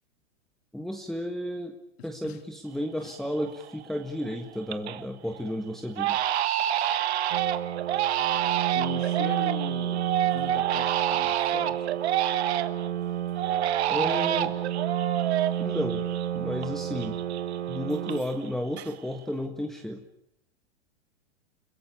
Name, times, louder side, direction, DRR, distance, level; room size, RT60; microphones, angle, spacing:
voice 1, 0.7-1.7 2.0-6.2 13.9-14.6 15.6-16.0 16.3-17.2 17.7-20.1, equal, ahead, 3 dB, 1.6 m, -32 dB
voice 2, 2.0-2.4 3.0-3.1 6.7-7.0 8.7-11.9, left 11 dB, 60° left, 9 dB, 2.3 m, -40 dB
Crying sobbing, 2.8-2.9 3.4-3.8 4.2-5.1 5.4-5.5 6.0-12.9 13.4-16.7 17.0-18.5 18.7-19.3, right 11 dB, 65° right, 1.5 m, -28 dB
sound 1, 7.3-18.2, right 10 dB, 90° right, 1.6 m, -31 dB
30.0 x 16.5 x 8.6 m, 0.77 s
hypercardioid pair, 120°, 35 cm